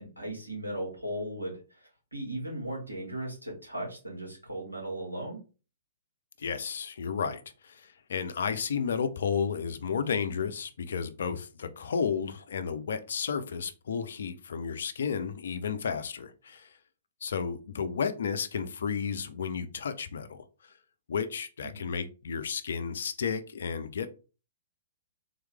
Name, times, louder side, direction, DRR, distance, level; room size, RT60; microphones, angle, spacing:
voice 1, 0.0-5.4 21.6-21.9, right 1 dB, 85° right, 2.0 m, -37 dB
voice 2, 6.4-16.7 17.2-20.4 21.1-24.1, left 6 dB, 60° left, 0.5 m, -32 dB
3.7 x 3.1 x 3.3 m
figure-of-eight pair, 110°, 0 cm